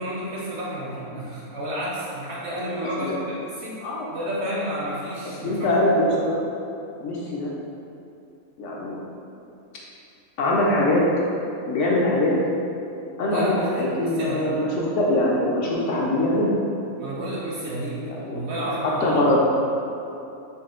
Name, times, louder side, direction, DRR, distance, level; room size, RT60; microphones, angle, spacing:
voice 1, 0.0-3.8 4.1-5.8 13.3-13.7 14.0-14.5 17.0-18.0 18.3-19.4, right 1 dB, 65° right, -5 dB, 0.7 m, -31 dB
voice 2, 5.4-6.3 7.0-7.5 8.6-8.9 10.4-11.0 11.7-12.4 13.2-16.6 17.9-18.8 19.0-19.4, left 1 dB, 70° left, -4 dB, 0.8 m, -23 dB
4.1 x 2.2 x 3.6 m, 2.7 s
omnidirectional pair, 1.5 m